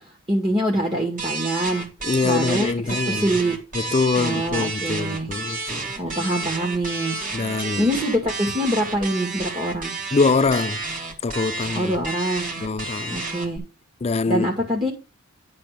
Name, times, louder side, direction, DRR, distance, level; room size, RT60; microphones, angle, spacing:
voice 1, 0.3-1.9 2.2-3.6 4.2-5.3 6.0-7.2 7.8-9.9 11.7-12.6 13.1-13.6 14.3-14.9, right 1 dB, 20° right, 2.1 m, -24 dB
sound 1, 1.2-13.6, right 3 dB, 40° right, 2.5 m, -31 dB
voice 2, 2.0-3.4 3.7-5.9 7.3-7.9 10.1-10.8 11.2-11.9 12.6-13.2 14.0-14.5, left 4 dB, 30° left, 0.4 m, -24 dB
10.5 x 4.3 x 6.6 m
head